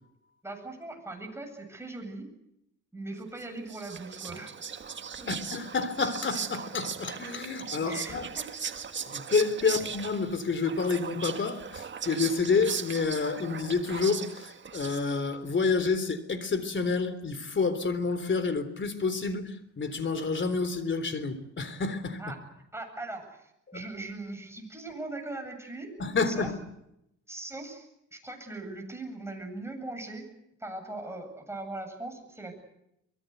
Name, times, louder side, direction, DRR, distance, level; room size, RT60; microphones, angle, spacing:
voice 1, 0.4-2.3 2.9-4.6 5.2-5.3 7.8-8.4 22.2-22.4 22.7-26.0 26.3-26.5 27.3-30.3 30.6-32.5, right 2 dB, 10° right, 3 dB, 8.0 m, -40 dB
Whispering, 3.4-15.3, right 6 dB, 40° right, 1.7 m, -38 dB
voice 2, 5.3-8.3 9.1-22.2 23.7-23.8 26.0-26.5, left 4 dB, 40° left, 13 dB, 3.6 m, -29 dB
24.0 x 22.0 x 8.1 m, 0.81 s
cardioid pair, 90°, 30 cm